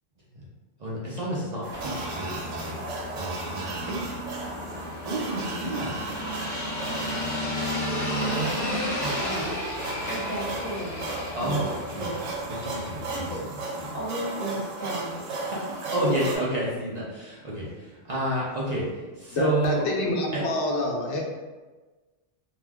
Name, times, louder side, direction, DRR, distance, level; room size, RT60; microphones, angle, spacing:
voice 1, 0.8-2.8 3.1-4.0 5.1-6.0 8.3-9.5 11.3-12.3 12.6-13.3 13.8-14.0 14.8-19.8 20.3-20.4, right 1 dB, 50° right, -6 dB, 0.5 m, -31 dB
sound 1, 1.6-9.7, equal, 10° right, 0.8 m, -45 dB
sound 2, 1.6-16.4, right 3 dB, 90° right, 0.9 m, -35 dB
sound 3, 1.8-13.4, left 1 dB, 15° left, 1.2 m, -33 dB
voice 2, 10.1-11.1 11.4-12.3 13.1-13.7 13.9-15.5, right 1 dB, 40° left, -7 dB, 1.0 m, -35 dB
voice 3, 19.3-21.2, left 2 dB, 75° left, -1 dB, 0.9 m, -27 dB
2.4 x 2.2 x 3.4 m, 1.3 s
omnidirectional pair, 1.2 m